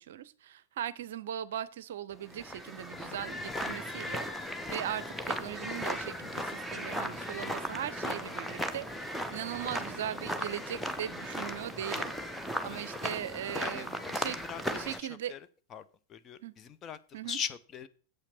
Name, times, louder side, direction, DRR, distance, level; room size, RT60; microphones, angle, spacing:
voice 1, 0.0-14.4 14.7-15.3 16.4-16.5 17.1-17.4, right 10 dB, 60° right, 17 dB, 0.6 m, -39 dB
sound 1, 2.2-15.0, equal, ahead, 0.9 m, -37 dB
voice 2, 14.1-15.4 15.7-15.8 16.3-17.0 17.3-17.9, left 8 dB, 30° left, 11 dB, 0.7 m, -40 dB
7.8 x 5.8 x 5.9 m, 0.39 s
figure-of-eight pair, 90°, 0 cm